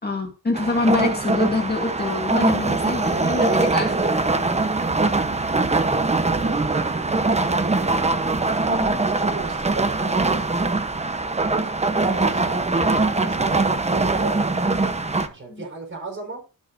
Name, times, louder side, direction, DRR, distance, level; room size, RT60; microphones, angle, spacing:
voice 1, 0.0-3.9 4.6-4.7 8.7-9.0 12.0-12.2 13.3-13.4 15.5-15.6, left 3 dB, 30° left, 2.4 m, -26 dB
sound 1, 0.5-15.3, right 3 dB, 20° right, 1.0 m, -22 dB
voice 2, 2.9-3.9 4.5-8.2 9.0-11.0 11.9-12.7 13.1-14.5 15.3-16.4, right 3 dB, 35° right, 5.1 m, -36 dB
18.0 x 6.9 x 2.7 m
wide cardioid pair, 150°, 33 cm